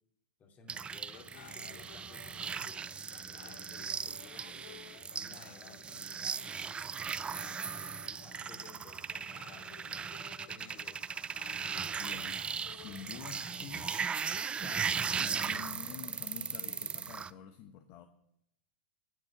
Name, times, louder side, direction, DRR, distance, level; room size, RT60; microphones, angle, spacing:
voice 1, 0.4-2.8 3.2-6.6 7.4-10.1 10.4-11.0, left 4 dB, 30° left, 3 dB, 2.7 m, -57 dB
sound 1, 0.7-17.3, right 6 dB, 20° right, 0.5 m, -38 dB
sound 2, 1.1-17.2, left 12 dB, 65° left, 0.6 m, -56 dB
voice 2, 11.9-12.4 12.7-14.0 14.3-18.1, left 9 dB, 45° left, 7 dB, 1.0 m, -48 dB
11.5 x 9.8 x 5.0 m, 0.75 s
hypercardioid pair, 105°, 6 cm